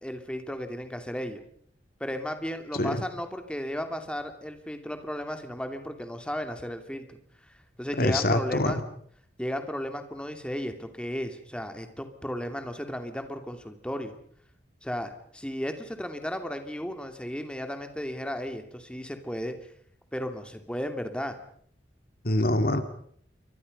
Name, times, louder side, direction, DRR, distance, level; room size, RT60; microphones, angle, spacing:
voice 1, 0.0-1.4 2.0-7.2 7.8-8.8 9.4-14.2 14.8-19.5 20.1-21.4, equal, 5° left, 6 dB, 2.7 m, -34 dB
voice 2, 8.0-8.8 22.2-22.8, left 1 dB, 55° left, 9 dB, 2.3 m, -24 dB
28.5 x 24.5 x 5.4 m, 0.62 s
head